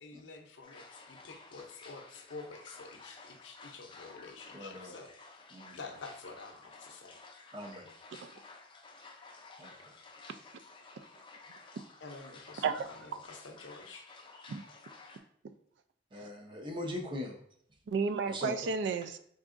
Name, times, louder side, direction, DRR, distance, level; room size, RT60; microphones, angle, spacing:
voice 1, 0.0-5.1 5.7-7.2 12.0-14.1, left 3 dB, 85° left, 5 dB, 0.6 m, -49 dB
sound 1, 0.6-15.2, left 3 dB, 25° left, 0.4 m, -53 dB
voice 2, 4.5-4.9 5.5-5.8 7.5-7.9 9.6-9.7 16.1-17.3 18.3-18.6, left 1 dB, 25° right, 2 dB, 0.6 m, -40 dB
voice 3, 17.9-19.2, right 5 dB, 75° right, 9 dB, 0.3 m, -32 dB
3.9 x 3.5 x 2.5 m, 0.65 s
head